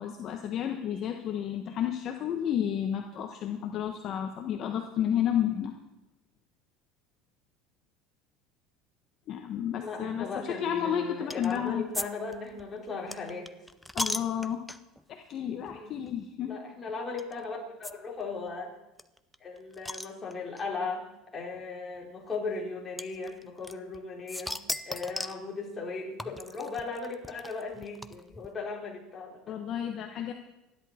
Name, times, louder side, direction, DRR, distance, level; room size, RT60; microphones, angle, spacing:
voice 1, 0.0-5.7 9.3-11.8 13.9-14.6 15.1-16.6 29.5-30.3, left 9 dB, 45° left, 4 dB, 1.3 m, -31 dB
voice 2, 9.8-13.5 14.2-14.3 15.6-15.9 16.5-18.8 19.4-21.1 21.3-29.6 30.1-30.3, left 4 dB, 20° left, -2 dB, 4.1 m, -37 dB
sound 1, 11.3-11.6 11.9-12.1 12.3-15.0 15.6-16.1 17.2-17.3 17.8-17.9 18.2-18.3 18.5-18.6 19.0-20.6 21.5-21.6 23.0-24.0 24.3-25.4 26.2-28.5, left 1 dB, 5° left, 0.6 m, -37 dB
29.0 x 11.0 x 4.4 m, 0.99 s
supercardioid pair, 130°, 0 cm